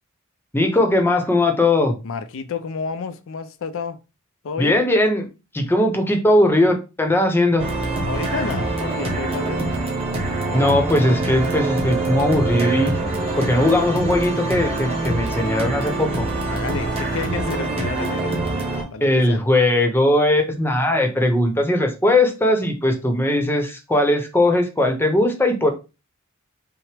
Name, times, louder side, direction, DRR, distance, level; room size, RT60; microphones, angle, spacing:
voice 1, 0.5-1.9 4.6-5.3 5.5-7.7 10.5-13.0 13.4-16.3 19.0-25.7, left 1 dB, 10° left, 0.7 m, -19 dB
voice 2, 2.0-4.0 4.4-4.8 8.0-9.9 16.3-18.4 18.9-19.4, left 5 dB, 65° left, 0.4 m, -30 dB
sound 1, 7.6-18.8, right 2 dB, 30° right, 1.1 m, -24 dB
5.7 x 2.0 x 3.3 m
head